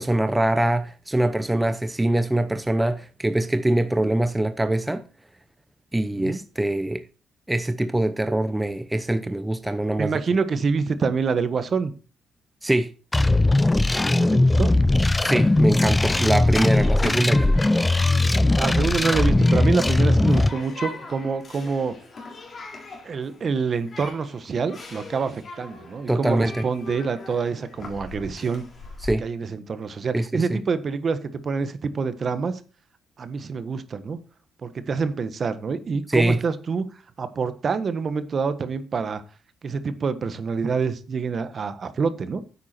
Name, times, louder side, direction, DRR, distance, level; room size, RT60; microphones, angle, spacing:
voice 1, 0.0-5.0 5.9-7.0 7.5-10.2 12.6-12.9 15.2-17.6 26.1-26.6 29.0-29.2 30.1-30.6 36.1-36.4, right 1 dB, 10° right, 0.8 m, -23 dB
voice 2, 10.0-11.9 14.1-14.7 18.6-21.9 23.0-28.6 29.2-32.6 33.2-34.2 34.6-36.9 37.2-39.2 39.6-42.4, right 5 dB, 45° right, 1.3 m, -26 dB
sound 1, 13.1-20.5, left 2 dB, 15° left, 0.4 m, -19 dB
Human group actions, 14.8-29.1, left 3 dB, 40° left, 3.9 m, -40 dB
10.0 x 8.5 x 4.4 m
cardioid pair, 90°, 0 cm